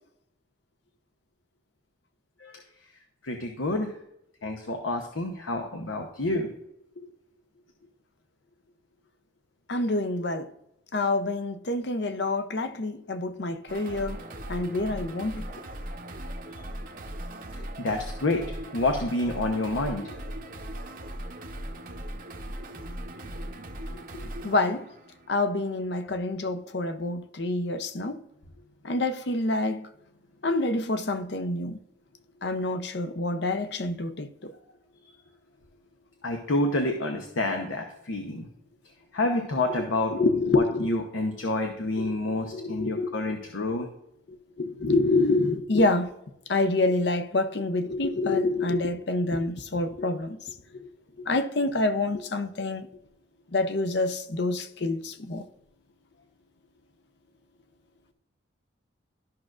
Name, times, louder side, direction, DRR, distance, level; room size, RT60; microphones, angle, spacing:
voice 1, 3.2-3.9 4.4-6.5 17.8-18.4 18.7-20.4 36.2-38.5 39.1-40.1 40.5-43.9, left 2 dB, 85° left, 0.9 m, -28 dB
voice 2, 9.7-10.5 10.9-14.2 14.5-15.5 23.9-24.9 25.3-28.2 28.8-29.9 30.4-31.8 32.4-34.5 40.1-40.9 42.0-42.1 42.5-43.1 44.3-46.1 46.5-50.9 51.3-52.9 53.5-55.5, left 2 dB, 55° left, 0.7 m, -27 dB
sound 1, 13.7-25.7, right 1 dB, 45° right, 0.8 m, -39 dB
13.0 x 6.0 x 2.5 m
head